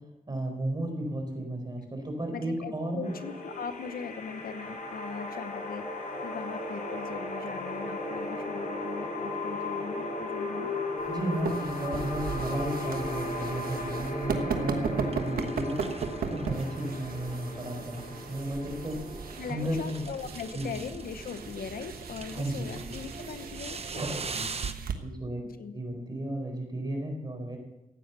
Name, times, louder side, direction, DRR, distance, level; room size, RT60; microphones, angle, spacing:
voice 1, 0.3-3.1 11.1-18.0 18.3-19.0 19.5-20.0 20.5-20.7 22.3-22.7 24.0-24.1 24.3-24.5 25.0-25.4 25.7-27.6, right 1 dB, 30° right, 3 dB, 4.4 m, -33 dB
voice 2, 2.3-5.9 6.2-10.7 15.1-15.4 19.4-24.0 25.6-25.7, left 6 dB, 80° left, 10 dB, 0.9 m, -40 dB
sound 1, 3.0-22.0, left 2 dB, 60° left, 4.1 m, -37 dB
sound 2, 11.0-24.9, right 5 dB, 85° right, 1.3 m, -37 dB
sound 3, 11.9-24.7, right 4 dB, 45° right, 1.0 m, -42 dB
15.0 x 9.4 x 6.8 m, 0.93 s
cardioid pair, 85°, 15 cm